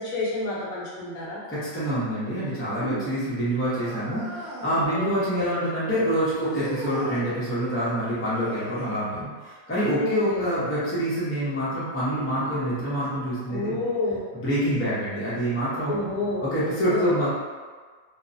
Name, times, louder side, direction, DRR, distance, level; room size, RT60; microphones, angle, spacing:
voice 1, 0.0-1.4 2.8-3.1 4.9-5.5 6.5-6.6 9.9-10.5 13.5-14.2 15.8-16.5 16.9-17.1, left 2 dB, 75° left, -6 dB, 1.1 m, -30 dB
voice 2, 1.5-13.8 14.3-16.0 16.4-17.3, equal, 15° left, -10 dB, 0.4 m, -26 dB
sound 1, 3.8-4.9 6.5-7.3 8.3-9.0 11.0-11.1 12.0-12.1 13.0-13.1, equal, 45° right, 1.0 m, -39 dB
2.9 x 2.0 x 2.6 m, 1.5 s
omnidirectional pair, 1.5 m